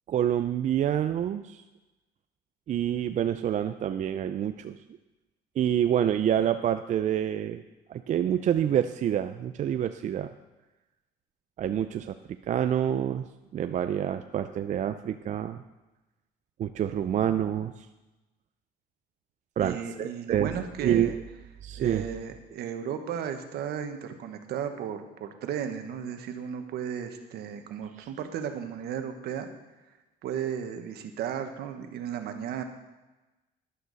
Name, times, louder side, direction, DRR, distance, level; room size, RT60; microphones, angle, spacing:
voice 1, 0.1-1.6 2.7-4.8 5.6-7.6 7.9-10.3 11.6-12.2 12.5-13.2 13.5-15.6 16.6-17.7 19.6-20.5 20.8-21.1 21.6-22.0, right 10 dB, 45° right, 9 dB, 0.5 m, -27 dB
voice 2, 19.6-21.1 21.8-29.5 30.2-32.6, right 8 dB, 70° right, 7 dB, 1.3 m, -34 dB
11.5 x 11.5 x 4.1 m, 1.1 s
cardioid pair, 110°, 17 cm